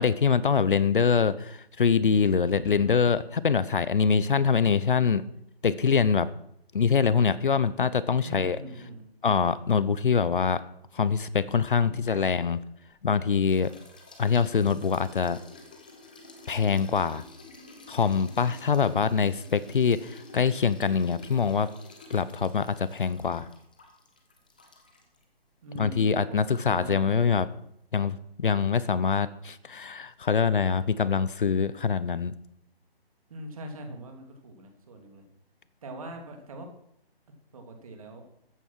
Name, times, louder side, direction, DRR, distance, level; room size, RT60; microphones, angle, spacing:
voice 1, 0.0-5.2 5.6-6.3 6.7-8.6 9.2-10.6 10.9-12.6 13.0-13.7 14.2-15.4 16.5-17.2 17.9-21.7 22.1-23.5 25.7-27.5 27.9-32.3, left 6 dB, 55° left, 16 dB, 0.8 m, -24 dB
voice 2, 2.2-2.9 8.2-9.0 11.8-12.0 25.6-27.4 33.3-35.2 35.8-36.7 37.5-38.2, right 1 dB, 35° right, 4 dB, 2.9 m, -42 dB
sound 1, 12.1-13.1 13.5-25.2, left 2 dB, 10° left, 0.6 m, -50 dB
14.0 x 9.0 x 6.3 m, 0.73 s
hypercardioid pair, 165°, 31 cm